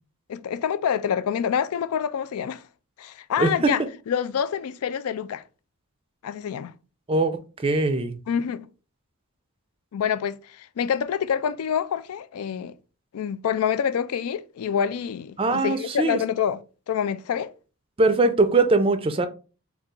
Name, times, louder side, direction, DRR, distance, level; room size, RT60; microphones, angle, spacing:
voice 1, 0.3-2.6 3.0-5.4 6.2-6.7 8.3-8.7 9.9-12.7 13.1-16.6 16.9-17.5, left 8 dB, 80° left, 0.4 m, -27 dB
voice 2, 7.1-8.2 15.4-16.2 18.0-19.3, right 3 dB, 25° right, 0.4 m, -21 dB
3.9 x 2.4 x 3.7 m
head